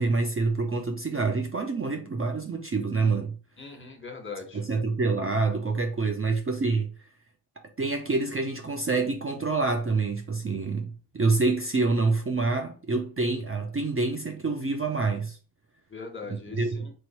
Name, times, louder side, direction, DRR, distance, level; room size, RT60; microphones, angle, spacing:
voice 1, 0.0-3.3 4.5-6.9 7.8-15.4 16.6-16.9, right 3 dB, 30° right, 0.6 m, -27 dB
voice 2, 3.6-4.6 15.9-16.9, left 4 dB, 25° left, 1.5 m, -40 dB
3.1 x 3.1 x 4.4 m
supercardioid pair, 45°, 46 cm